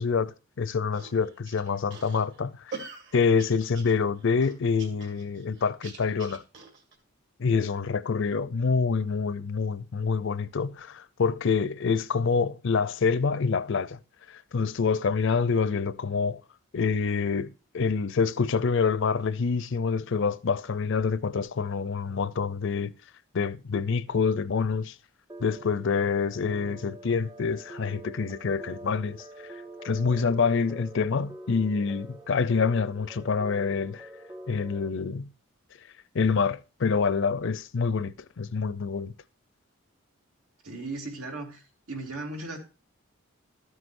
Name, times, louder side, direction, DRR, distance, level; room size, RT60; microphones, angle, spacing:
voice 1, 0.0-6.4 7.4-14.0 14.3-16.4 16.7-22.9 23.3-24.9 25.4-29.2 29.8-34.1 34.5-35.3 36.1-39.1, left 5 dB, 60° left, 0.5 m, -26 dB
sound 1, 0.9-6.9, right 4 dB, 55° right, 2.3 m, -44 dB
sound 2, 25.3-34.9, right 1 dB, 15° right, 0.5 m, -45 dB
voice 2, 40.6-42.6, right 2 dB, 85° right, 2.6 m, -37 dB
13.0 x 7.9 x 2.6 m
head